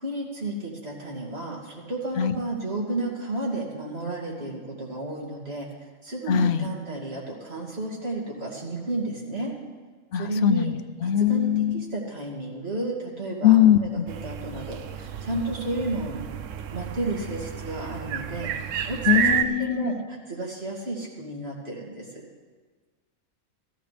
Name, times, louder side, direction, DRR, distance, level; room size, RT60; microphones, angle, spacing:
voice 1, 0.0-5.7 6.0-9.5 10.1-10.7 11.0-13.9 14.2-16.3 16.7-18.5 18.8-22.2, right 2 dB, 55° right, -3 dB, 2.8 m, -32 dB
voice 2, 6.3-6.7 10.1-11.8 13.4-14.1 19.1-20.0, left 10 dB, 65° left, 12 dB, 0.8 m, -21 dB
sound 1, 14.1-19.4, right 9 dB, 80° right, 1.0 m, -30 dB
16.5 x 14.0 x 3.4 m, 1.4 s
omnidirectional pair, 1.3 m